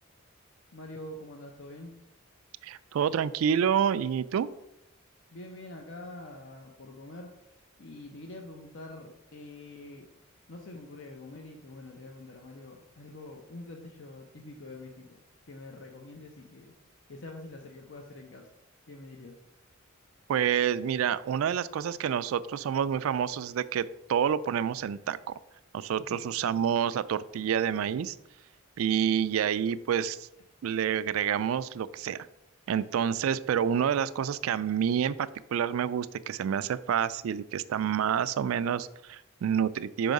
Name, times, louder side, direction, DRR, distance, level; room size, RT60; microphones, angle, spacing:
voice 1, 0.7-1.9 5.3-10.1 10.5-15.2 15.5-16.7 17.1-18.5 18.9-19.4 26.1-26.2, left 2 dB, 65° left, 2 dB, 0.7 m, -45 dB
voice 2, 2.6-4.5 20.3-25.4 25.7-28.2 28.8-30.3 30.6-32.2 32.7-40.1, right 8 dB, 85° right, 14 dB, 0.3 m, -28 dB
5.5 x 4.7 x 5.2 m, 0.85 s
head